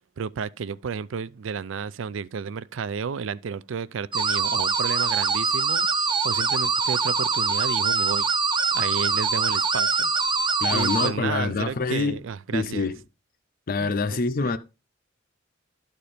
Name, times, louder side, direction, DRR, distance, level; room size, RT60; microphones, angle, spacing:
voice 1, 0.2-8.3 8.7-10.1 10.7-12.9 13.8-14.6, right 6 dB, 70° right, 0.4 m, -32 dB
sound 1, 4.1-11.1, right 4 dB, 25° right, 0.7 m, -24 dB
voice 2, 10.6-12.2 12.5-13.0 13.7-14.6, left 4 dB, 50° left, 0.6 m, -26 dB
12.0 x 4.3 x 5.0 m
head